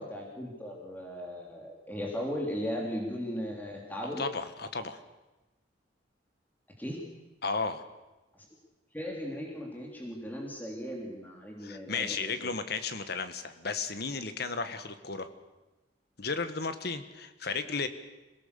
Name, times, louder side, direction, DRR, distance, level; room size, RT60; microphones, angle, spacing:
voice 1, 0.0-4.2 6.8-7.0 8.3-8.5 8.9-12.5, equal, 10° left, -1 dB, 3.5 m, -37 dB
voice 2, 4.0-5.0 7.4-7.9 11.6-15.3 16.2-17.9, left 4 dB, 60° left, 10 dB, 1.6 m, -34 dB
26.5 x 18.0 x 6.9 m, 1.1 s
head